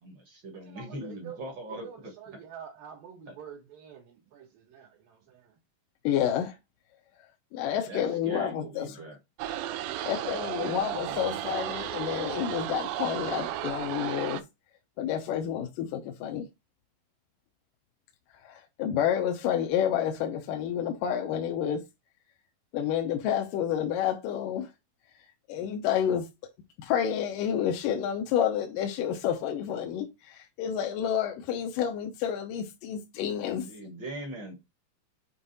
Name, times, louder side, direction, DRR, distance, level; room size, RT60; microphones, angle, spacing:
voice 1, 0.0-1.9 7.9-9.2 10.3-11.4 33.6-34.6, right 2 dB, 45° right, 1.5 m, -41 dB
voice 2, 0.6-1.4 1.7-5.6, right 8 dB, 75° right, 3.1 m, -47 dB
voice 3, 6.0-6.6 7.5-9.0 10.1-14.4 15.0-16.5 18.3-21.8 22.7-24.7 25.5-26.3 26.8-33.7, left 9 dB, 75° left, 2.3 m, -29 dB
sound 1, 9.4-14.4, right 12 dB, 90° right, 2.4 m, -34 dB
7.2 x 3.3 x 4.0 m
omnidirectional pair, 4.1 m